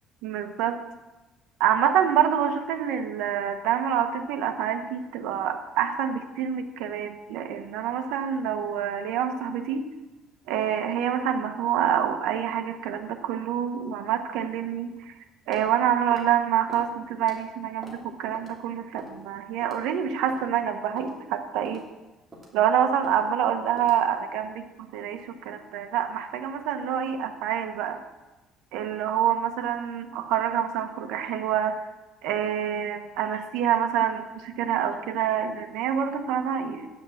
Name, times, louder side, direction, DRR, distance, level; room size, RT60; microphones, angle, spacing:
voice 1, 0.2-0.8 1.6-9.8 10.5-15.1 15.5-21.8 22.5-28.0 28.7-31.8 32.2-36.9, right 9 dB, 85° right, 7 dB, 1.2 m, -27 dB
sound 1, 15.5-15.7 16.1-16.3 16.7-16.9 17.2-17.4 17.8-18.0 18.3-18.5 19.0-19.2 19.6-19.8 20.3-20.4 21.0-21.1 21.6-21.8 22.3-22.6 23.0-23.2 23.8-24.0, right 1 dB, 15° right, 2.8 m, -44 dB
9.7 x 7.4 x 7.4 m, 1.1 s
cardioid pair, 145°, 0 cm